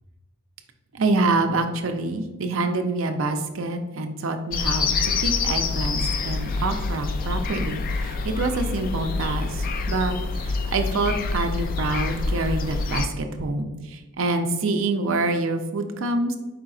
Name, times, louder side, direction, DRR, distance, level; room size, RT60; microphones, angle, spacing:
voice 1, 0.9-16.4, right 2 dB, 65° right, 6 dB, 0.5 m, -26 dB
sound 1, 4.5-13.1, left 4 dB, 40° left, 0.3 m, -26 dB
4.9 x 3.7 x 2.4 m, 1.2 s
head